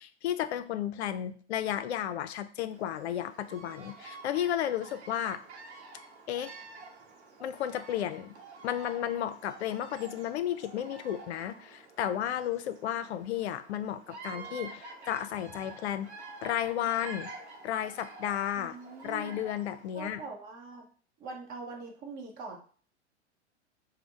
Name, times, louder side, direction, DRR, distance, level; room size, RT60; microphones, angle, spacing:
voice 1, 0.0-5.4 6.3-6.5 7.4-8.4 8.6-16.1 16.4-17.3 17.6-18.8 19.0-20.2, left 10 dB, 70° left, 12 dB, 0.5 m, -33 dB
Bird vocalization bird call bird song, 2.7-20.0, right 3 dB, 75° right, 0.9 m, -48 dB
voice 2, 18.6-19.4 19.9-20.9 21.2-22.6, right 4 dB, 25° right, 1 dB, 0.8 m, -43 dB
3.3 x 2.1 x 4.0 m, 0.43 s
hypercardioid pair, 105°, 34 cm